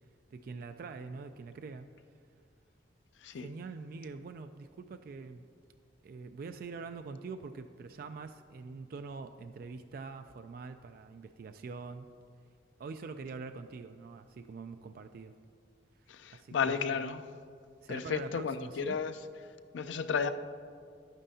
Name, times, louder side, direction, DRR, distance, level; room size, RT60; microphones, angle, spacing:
voice 1, 0.3-1.9 3.3-5.4 6.0-12.1 12.8-15.3 16.3-16.8 17.8-19.0, right 4 dB, 50° right, 0.3 m, -44 dB
voice 2, 16.1-17.2 17.9-19.1 19.7-20.3, left 6 dB, 85° left, 0.4 m, -33 dB
11.0 x 8.9 x 2.7 m
head